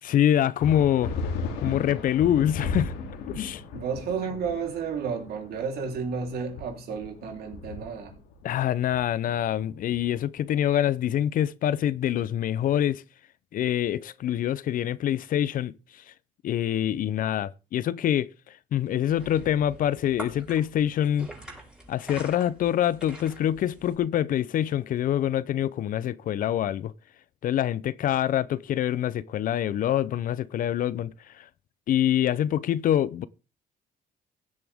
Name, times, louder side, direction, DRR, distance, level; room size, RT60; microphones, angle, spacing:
voice 1, 0.0-1.1 1.6-2.9 3.3-3.6 8.4-13.0 13.5-15.7 16.4-18.3 18.7-21.3 21.9-26.9 27.4-31.4 31.9-33.3, left 11 dB, 55° left, 0.6 m, -25 dB
sound 1, 0.6-10.6, left 4 dB, 90° left, 2.7 m, -36 dB
voice 2, 3.7-8.1, right 6 dB, 65° right, 3.6 m, -32 dB
sound 2, 18.9-24.0, right 1 dB, 5° right, 4.3 m, -45 dB
16.0 x 10.5 x 3.6 m
cardioid pair, 110°, 17 cm